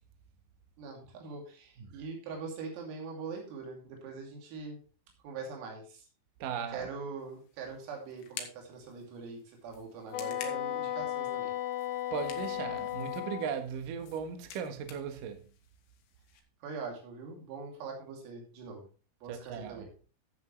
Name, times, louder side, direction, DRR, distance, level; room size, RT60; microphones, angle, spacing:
voice 1, 0.8-4.8 5.2-6.1 6.7-11.5 16.6-18.8 19.2-19.9, right 4 dB, 90° right, 5.5 m, -42 dB
voice 2, 6.4-6.9 12.1-15.4 19.3-19.8, right 7 dB, 65° right, 2.2 m, -37 dB
sound 1, 7.2-16.4, left 8 dB, 85° left, 4.4 m, -51 dB
Wind instrument woodwind instrument, 10.1-13.6, left 12 dB, 65° left, 3.3 m, -35 dB
15.0 x 8.7 x 3.2 m
omnidirectional pair, 5.8 m